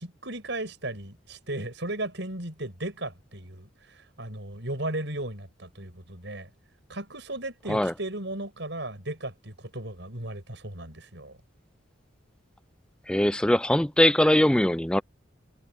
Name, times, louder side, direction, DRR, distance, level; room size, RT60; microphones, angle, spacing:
voice 1, 0.0-6.5 6.9-11.4, right 1 dB, 65° right, 6.0 m, -36 dB
voice 2, 13.1-15.0, left 1 dB, 5° left, 0.4 m, -21 dB
head